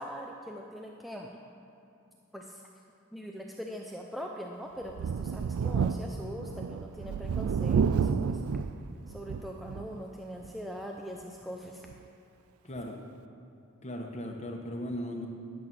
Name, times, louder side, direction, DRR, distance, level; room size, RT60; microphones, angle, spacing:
voice 1, 0.0-1.4 2.3-2.6 3.1-8.4 9.1-11.9, equal, ahead, 0 dB, 0.5 m, -42 dB
Thunder, 4.9-10.0 10.4-10.5 11.9-12.0, right 6 dB, 80° right, 0.3 m, -30 dB
voice 2, 12.6-13.0 13.8-15.3, left 1 dB, 30° left, 1 dB, 1.2 m, -37 dB
11.5 x 7.8 x 6.1 m, 2.7 s
head